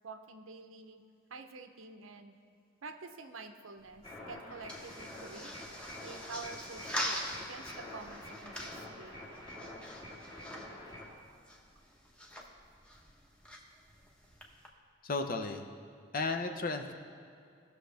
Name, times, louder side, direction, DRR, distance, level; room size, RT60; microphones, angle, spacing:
voice 1, 0.0-1.0 1.3-2.3 2.8-5.5 6.0-9.2, right 3 dB, 90° right, 7 dB, 0.7 m, -48 dB
sound 1, 3.8-14.7, equal, 5° left, 1.0 m, -44 dB
sound 2, 4.0-11.1, left 1 dB, 25° left, 2.2 m, -47 dB
voice 2, 15.0-15.7 16.1-16.9, left 3 dB, 45° left, 6 dB, 0.7 m, -34 dB
17.5 x 6.4 x 3.4 m, 2.5 s
head